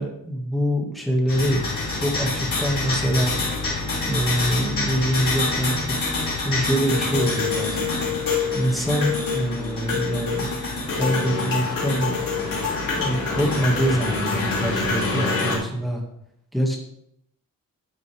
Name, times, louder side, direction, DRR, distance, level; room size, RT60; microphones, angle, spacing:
voice 1, 0.0-1.7 1.9-3.3 4.0-6.0 6.3-8.0 8.5-10.5 10.9-12.2 13.0-16.0 16.5-16.8, equal, ahead, 0 dB, 1.9 m, -24 dB
sound 1, 1.3-15.6, left 3 dB, 70° left, 3.0 m, -26 dB
9.5 x 9.3 x 3.5 m, 0.77 s
wide cardioid pair, 140°, 34 cm